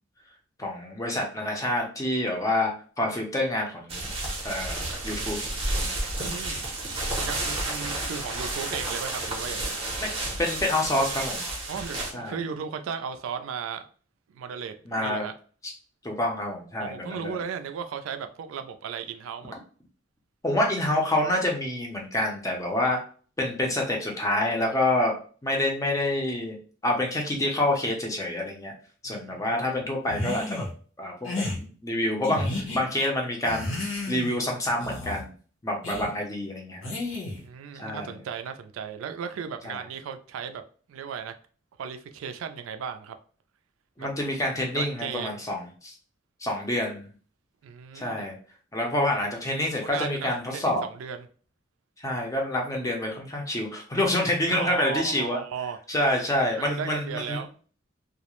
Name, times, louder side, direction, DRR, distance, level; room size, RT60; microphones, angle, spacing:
voice 1, 0.6-4.1 4.4-5.4 10.0-10.1 10.4-11.4 12.1-12.4 14.9-15.3 15.6-15.7 16.0-17.4 20.4-23.0 23.4-26.5 26.8-28.7 29.0-30.7 31.0-33.7 34.1-35.3 35.6-36.9 37.7-38.1 39.6-39.8 44.0-45.9 46.4-47.0 47.9-48.4 48.7-50.8 52.0-55.4 55.9-57.4, left 1 dB, 15° left, 0.5 m, -27 dB
sound 1, 3.9-12.1, right 2 dB, 30° right, 0.6 m, -31 dB
voice 2, 6.1-6.7 7.0-9.7 11.7-13.9 14.3-15.3 16.8-19.5 29.0-29.7 37.4-40.6 40.9-41.3 41.8-43.2 44.0-44.1 44.7-45.4 47.6-48.3 49.8-51.3 54.5-55.8 56.6-57.5, right 7 dB, 85° right, 0.3 m, -36 dB
sound 2, 30.1-30.7 31.2-31.6 32.2-32.8 33.4-34.4 34.8-35.2 35.8-36.1 36.8-37.4, left 2 dB, 70° left, 0.8 m, -32 dB
2.3 x 2.0 x 2.9 m
head